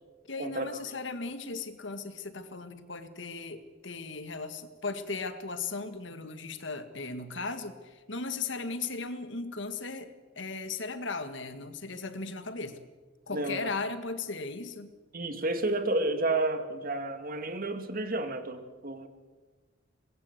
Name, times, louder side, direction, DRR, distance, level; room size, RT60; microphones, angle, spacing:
voice 1, 0.2-12.8 13.3-14.9, left 3 dB, 65° left, 9 dB, 1.9 m, -37 dB
voice 2, 13.3-13.7 15.1-19.1, right 2 dB, 50° right, 7 dB, 2.4 m, -31 dB
24.5 x 21.0 x 8.1 m, 1.3 s
head